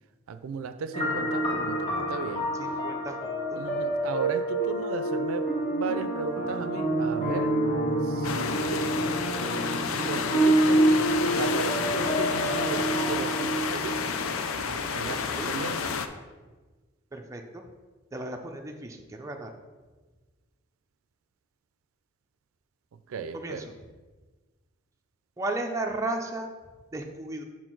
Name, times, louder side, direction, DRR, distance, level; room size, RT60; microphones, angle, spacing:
voice 1, 0.3-2.5 3.5-7.7 8.0-9.0 10.0-14.0 14.7-15.8 23.1-23.7, right 5 dB, 85° right, 11 dB, 0.4 m, -36 dB
sound 1, 0.9-14.5, right 1 dB, 25° left, 1.0 m, -27 dB
voice 2, 2.6-3.6 15.1-15.5 17.1-17.6 18.1-19.5 23.3-23.7 25.4-26.5 26.9-27.4, right 2 dB, 15° right, 2 dB, 0.5 m, -35 dB
sound 2, 8.2-16.1, left 6 dB, 85° left, 0.5 m, -30 dB
6.0 x 4.4 x 4.5 m, 1.3 s
head